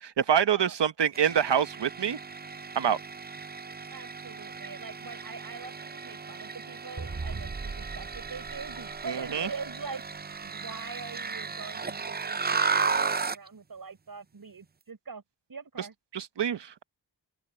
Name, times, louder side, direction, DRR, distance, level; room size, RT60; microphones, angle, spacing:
voice 1, 0.0-2.2 2.7-3.0 9.1-9.5 16.1-16.8, right 8 dB, 85° right, 1.0 m, -26 dB
sound 1, 1.1-13.5, right 5 dB, 25° right, 0.5 m, -35 dB
voice 2, 3.9-10.0 10.4-15.2 15.5-15.9, right 5 dB, 55° right, 5.7 m, -43 dB
sound 2, 7.0-9.7, right 3 dB, 40° right, 3.0 m, -39 dB
wide cardioid pair, 125°, 41 cm